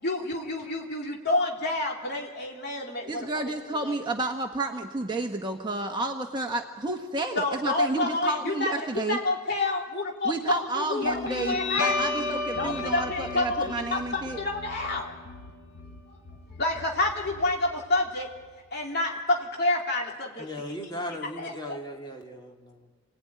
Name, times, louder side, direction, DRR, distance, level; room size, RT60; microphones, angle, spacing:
voice 1, 0.0-3.3 3.8-3.9 7.3-11.9 12.6-15.1 16.1-16.2 16.6-18.3 18.7-20.5 21.4-21.8, left 2 dB, 45° left, -1 dB, 3.0 m, -28 dB
voice 2, 3.1-9.2 10.2-14.4, right 2 dB, 20° right, 2 dB, 1.3 m, -31 dB
Guitar, 11.0-18.0, left 3 dB, 60° left, 4.7 m, -33 dB
voice 3, 20.4-22.9, left 1 dB, 20° left, 0 dB, 2.6 m, -37 dB
28.0 x 20.0 x 9.5 m, 1.4 s
head